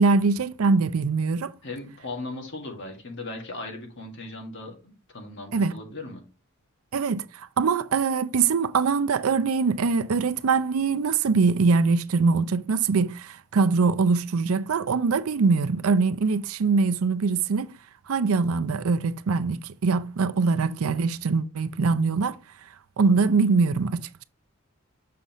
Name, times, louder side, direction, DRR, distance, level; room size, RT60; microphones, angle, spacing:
voice 1, 0.0-1.5 5.5-5.8 6.9-17.7 18.1-22.4 23.0-24.2, right 4 dB, 75° right, 0.5 m, -23 dB
voice 2, 1.6-6.2, left 2 dB, 55° left, 1.9 m, -38 dB
6.7 x 5.4 x 3.0 m
head